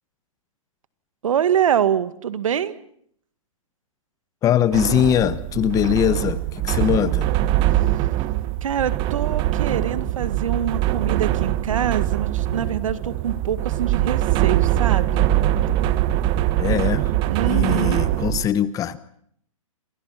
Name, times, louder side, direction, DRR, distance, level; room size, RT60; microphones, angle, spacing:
voice 1, 1.2-2.7 8.6-15.3 17.3-18.0, right 9 dB, 70° right, 13 dB, 2.1 m, -25 dB
voice 2, 4.4-7.3 16.6-17.1 17.4-19.0, left 10 dB, 20° left, 16 dB, 1.1 m, -21 dB
sound 1, 4.7-18.4, right 14 dB, 30° right, 1.2 m, -22 dB
29.0 x 27.0 x 5.9 m, 0.68 s
hypercardioid pair, 140°, 18 cm